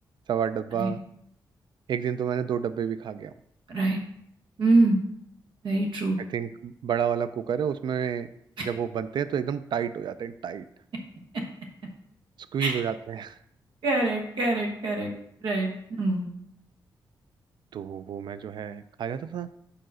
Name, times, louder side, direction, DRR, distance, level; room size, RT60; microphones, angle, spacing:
voice 1, 0.3-1.0 1.9-3.3 6.3-8.3 8.6-10.6 12.5-13.4 17.7-19.5, right 8 dB, 65° right, 13 dB, 0.3 m, -30 dB
voice 2, 3.7-4.0 4.6-5.0 5.6-6.2 8.6-8.7 11.3-11.4 12.6-12.8 13.8-15.1 15.4-16.3, right 2 dB, 90° right, 1 dB, 1.1 m, -24 dB
4.9 x 4.7 x 6.2 m, 0.74 s
cardioid pair, 100°, 8 cm